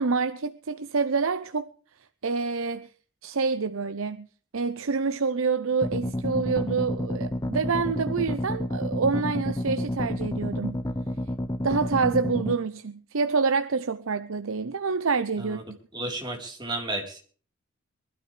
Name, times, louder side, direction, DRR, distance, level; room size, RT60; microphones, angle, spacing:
voice 1, 0.0-1.7 2.2-2.9 3.2-4.3 4.5-10.8 11.6-15.8, right 4 dB, 80° right, 0.8 m, -27 dB
sound 1, 5.8-12.6, left 1 dB, 15° left, 0.7 m, -30 dB
voice 2, 15.9-17.2, right 2 dB, 20° right, 3.9 m, -33 dB
23.5 x 12.5 x 3.3 m
head